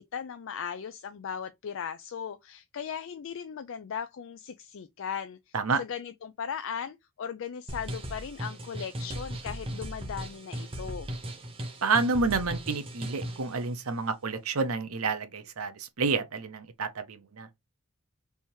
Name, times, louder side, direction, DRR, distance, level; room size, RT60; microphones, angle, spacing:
voice 1, 0.0-11.1, left 7 dB, 60° left, 0.4 m, -38 dB
sound 1, 7.7-13.5, equal, 25° right, 0.9 m, -37 dB
voice 2, 11.8-17.5, right 4 dB, 85° right, 0.8 m, -29 dB
3.5 x 2.8 x 4.5 m
head